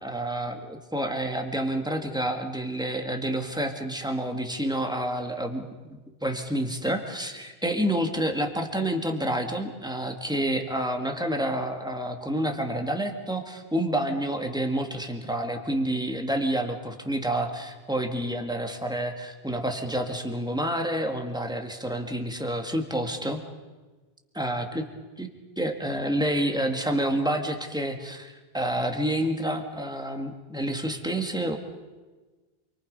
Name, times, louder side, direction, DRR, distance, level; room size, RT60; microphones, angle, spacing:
voice 1, 0.0-23.4 24.3-24.9 25.2-25.3 25.6-31.6, right 1 dB, 5° right, 3 dB, 1.9 m, -29 dB
28.5 x 23.5 x 5.4 m, 1.3 s
omnidirectional pair, 1.1 m